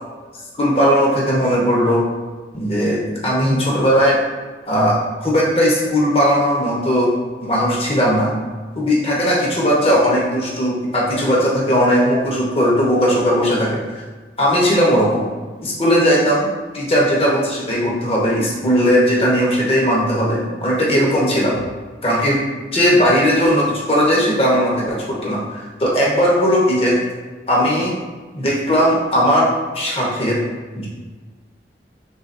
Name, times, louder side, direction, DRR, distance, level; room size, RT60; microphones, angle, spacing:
voice 1, 0.6-2.0 2.5-4.2 4.7-5.0 5.2-7.1 7.4-8.3 8.8-14.0 14.4-15.3 15.6-16.5 16.7-21.6 22.0-22.4 22.7-27.0 27.5-27.9 28.3-30.4 30.7-30.9, equal, 35° left, -4 dB, 0.8 m, -17 dB
5.6 x 3.5 x 2.5 m, 1.4 s
head